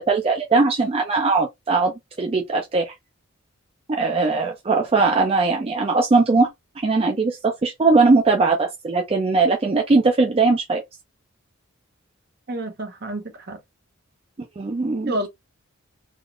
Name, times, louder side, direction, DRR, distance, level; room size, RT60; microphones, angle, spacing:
voice 1, 0.0-2.9 3.9-6.5 6.8-10.8 14.6-15.1, right 3 dB, 30° right, 0.4 m, -20 dB
voice 2, 12.5-13.6 15.1-15.3, right 1 dB, 50° right, 0.9 m, -29 dB
3.4 x 2.3 x 2.4 m
head